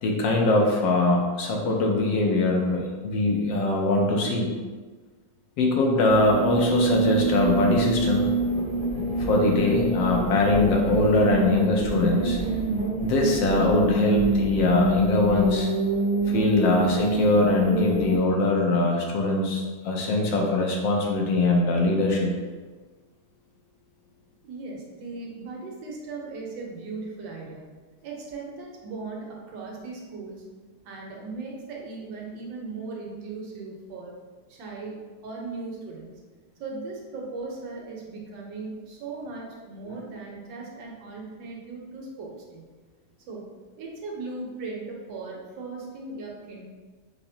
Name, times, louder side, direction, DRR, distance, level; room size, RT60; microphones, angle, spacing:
voice 1, 0.0-4.5 5.6-8.3 9.2-12.4 13.0-15.7 16.3-22.3, left 2 dB, 80° left, 0 dB, 1.4 m, -22 dB
sound 1, 6.1-18.2, right 2 dB, 45° right, 1.1 m, -26 dB
voice 2, 24.4-27.7 28.0-30.4 30.8-34.2 34.5-36.2 36.6-42.7 43.3-43.4 43.8-46.6, right 3 dB, 80° right, -2 dB, 1.5 m, -38 dB
5.7 x 2.1 x 2.7 m, 1.4 s
omnidirectional pair, 2.0 m